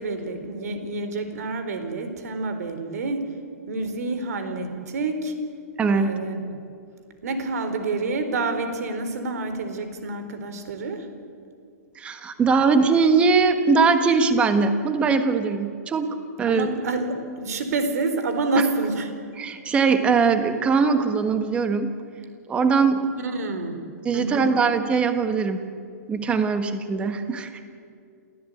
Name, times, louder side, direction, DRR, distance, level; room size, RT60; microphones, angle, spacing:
voice 1, 0.0-3.3 3.7-5.3 6.0-6.6 7.2-11.1 16.4-19.1 23.2-23.8 24.1-24.5, right 3 dB, 65° right, 8 dB, 4.2 m, -28 dB
voice 2, 5.8-6.2 12.0-16.7 18.6-18.7 19.4-21.9 22.5-23.1 24.0-25.6 26.1-27.5, right 5 dB, 10° right, 8 dB, 1.4 m, -21 dB
27.5 x 16.5 x 9.4 m, 2.3 s
hypercardioid pair, 165°, 9 cm